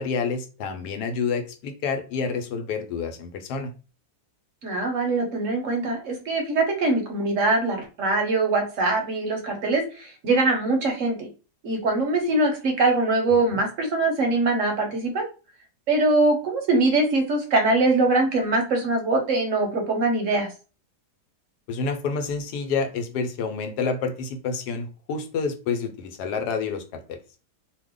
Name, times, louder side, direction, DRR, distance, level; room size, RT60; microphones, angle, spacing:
voice 1, 0.0-3.7 13.5-13.6 21.7-27.2, left 5 dB, 85° left, 7 dB, 1.2 m, -28 dB
voice 2, 4.6-11.2 11.6-15.2 15.9-20.5, right 2 dB, 60° right, 3 dB, 0.9 m, -22 dB
2.7 x 2.1 x 3.5 m, 0.34 s
omnidirectional pair, 1.7 m